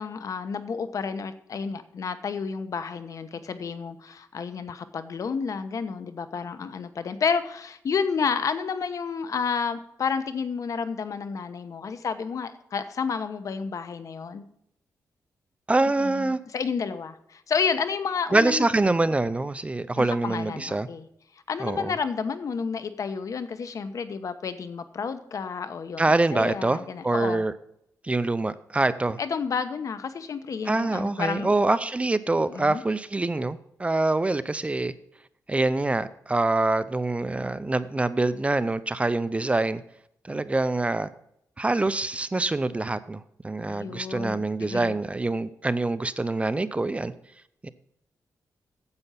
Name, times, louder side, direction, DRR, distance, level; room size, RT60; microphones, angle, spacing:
voice 1, 0.0-14.4 16.0-18.7 20.0-21.1 21.5-27.4 29.2-31.5 32.5-32.8 43.7-45.0, left 5 dB, 60° left, 11 dB, 1.1 m, -30 dB
voice 2, 15.7-16.4 18.3-20.9 21.6-21.9 26.0-26.8 27.0-27.5 28.0-29.2 30.7-34.9 35.5-39.8 40.2-41.1 41.6-47.1 47.6-47.7, right 2 dB, 20° right, 14 dB, 0.6 m, -25 dB
9.7 x 8.0 x 5.7 m, 0.75 s
cardioid pair, 100°, 7 cm